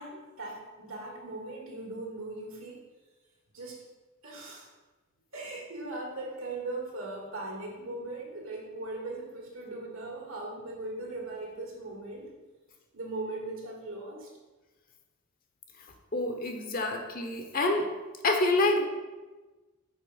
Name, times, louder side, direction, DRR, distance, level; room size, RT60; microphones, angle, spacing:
voice 1, 0.0-2.8 3.5-3.8 4.2-4.7 5.3-12.3 12.9-14.3, right 2 dB, 70° right, -1 dB, 2.1 m, -39 dB
voice 2, 16.1-17.9 18.2-18.9, left 2 dB, 40° left, 3 dB, 0.9 m, -27 dB
6.4 x 4.7 x 5.7 m, 1.2 s
head